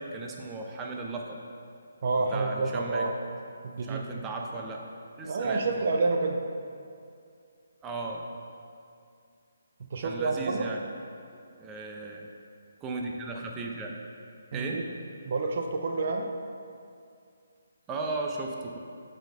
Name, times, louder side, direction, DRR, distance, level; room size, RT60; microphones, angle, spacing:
voice 1, 0.0-1.4 2.3-3.2 3.8-4.9 5.2-5.8 7.8-8.3 10.0-10.8 11.6-12.3 12.8-14.0 14.5-14.9 17.9-18.8, right 3 dB, 15° right, 0 dB, 0.7 m, -36 dB
voice 2, 2.0-3.1 3.6-4.0 5.2-6.4 9.9-10.7 14.5-14.9 15.3-16.3, right 3 dB, 50° right, 3 dB, 0.6 m, -28 dB
7.8 x 4.3 x 5.5 m, 2.4 s
figure-of-eight pair, 145°, 0 cm